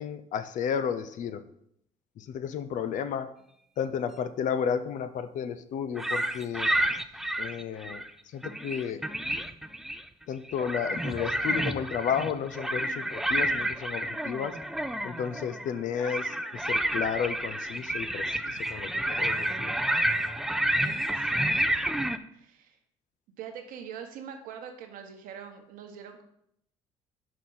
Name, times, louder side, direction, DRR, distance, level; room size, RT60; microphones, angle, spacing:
voice 1, 0.0-1.5 2.2-3.3 3.8-6.7 7.4-9.1 10.3-14.6 15.0-19.7, left 7 dB, 55° left, 11 dB, 0.6 m, -32 dB
sound 1, 6.0-8.1 8.4-10.1 10.5-22.2, right 1 dB, ahead, 0.5 m, -30 dB
voice 2, 20.8-21.6 21.8-22.0 22.3-22.8 23.4-26.2, right 8 dB, 65° right, 5 dB, 1.1 m, -43 dB
5.8 x 4.9 x 5.5 m, 0.73 s
hypercardioid pair, 50°, 16 cm